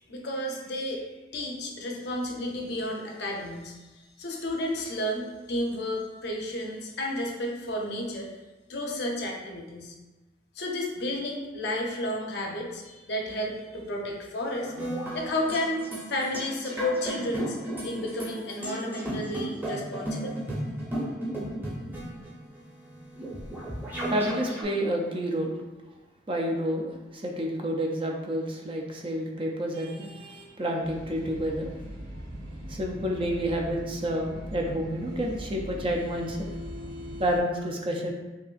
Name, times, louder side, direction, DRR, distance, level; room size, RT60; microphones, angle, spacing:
voice 1, 0.1-8.3 8.7-9.9 10.5-14.7 15.1-17.6 17.8-20.4, left 1 dB, 60° left, 0 dB, 0.6 m, -32 dB
sound 1, 14.5-24.6, right 1 dB, 10° right, 0.8 m, -34 dB
voice 2, 24.1-25.6 26.3-31.7 32.7-36.5 37.2-38.1, equal, 30° right, 0 dB, 0.4 m, -29 dB
sound 2, 30.8-37.4, equal, 75° right, 0.8 m, -40 dB
5.4 x 2.5 x 2.4 m, 1.1 s
head